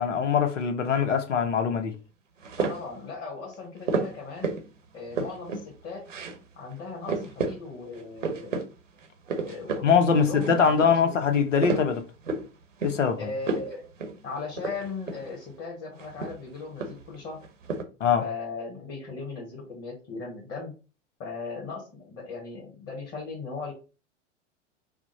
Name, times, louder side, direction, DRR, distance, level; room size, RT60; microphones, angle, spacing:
voice 1, 0.0-1.9 9.8-12.0 12.8-13.2 18.0-18.2, left 6 dB, 80° left, 0.8 m, -22 dB
sound 1, 2.4-3.0 3.9-4.7 5.0-5.7 6.1-6.4 6.7-6.8 7.1-7.6 7.9-8.6 9.0-9.9 10.2-10.9 11.3-12.5 12.8-13.1 13.4-13.7 14.0-14.2 14.5-15.3 16.0-17.1 17.4-17.8, right 4 dB, 90° right, 1.0 m, -31 dB
voice 2, 2.6-4.5 4.9-6.1 6.6-8.6 9.3-11.2 13.2-13.9 14.2-17.4 18.2-20.7 21.2-23.7, left 4 dB, 35° left, 2.1 m, -38 dB
6.0 x 2.1 x 4.0 m
hypercardioid pair, 90°, 37 cm